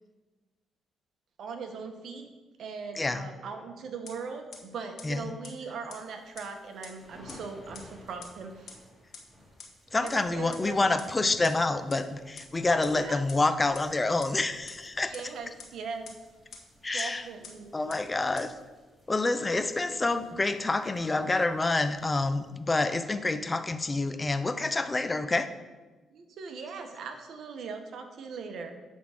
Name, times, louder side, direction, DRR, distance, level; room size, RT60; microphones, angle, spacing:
voice 1, 1.4-2.3 2.6-8.8 10.0-10.8 11.2-11.3 12.9-13.2 15.1-16.2 16.9-17.8 26.1-28.8, right 5 dB, 65° right, 5 dB, 1.2 m, -40 dB
voice 2, 2.9-3.3 5.0-5.3 9.9-15.1 16.8-17.3 17.7-18.6 19.1-25.5, left 2 dB, 20° left, 11 dB, 0.6 m, -27 dB
sound 1, 4.1-4.2 4.5-4.6 5.0-5.1 5.4-5.5 5.9-6.0 6.4-6.5 6.8-6.9 7.3-7.4 7.7-7.8 8.2-8.3 8.7-8.8 9.1-9.2 9.6-9.7 10.1-10.2 10.5-10.6 11.0-11.1 11.4-11.5 11.9-12.0 12.4-12.5 12.8-12.9 13.3-13.4 13.7-13.8 14.2-14.3 14.7-14.8 15.1-15.2 15.6-15.7 16.1-16.2 16.5-16.6 17.0-17.1 17.4-17.5 17.9-18.0 18.4-18.5, left 6 dB, 65° left, 1.6 m, -44 dB
sound 2, 6.0-22.9, equal, 5° right, 2.5 m, -57 dB
9.9 x 3.8 x 6.4 m, 1.2 s
cardioid pair, 90°, 0 cm